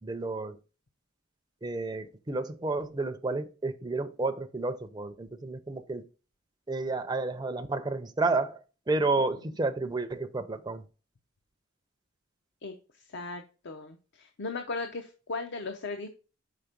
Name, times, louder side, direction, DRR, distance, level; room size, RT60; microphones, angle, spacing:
voice 1, 0.0-0.6 1.6-6.0 6.7-10.8, right 3 dB, 20° right, 0.5 m, -31 dB
voice 2, 12.6-16.1, left 3 dB, 55° left, 0.6 m, -37 dB
5.8 x 4.2 x 5.1 m
head